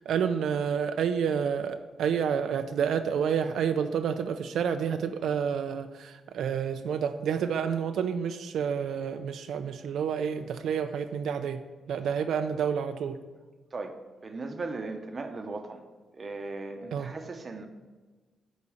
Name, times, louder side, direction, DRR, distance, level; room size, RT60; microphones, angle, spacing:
voice 1, 0.0-11.6 11.9-13.2 16.9-17.1, right 7 dB, 80° right, 8 dB, 0.4 m, -29 dB
voice 2, 13.7-15.8 16.1-17.7, right 3 dB, 30° right, 6 dB, 0.8 m, -37 dB
9.7 x 4.1 x 7.1 m, 1.3 s
wide cardioid pair, 155°, 0 cm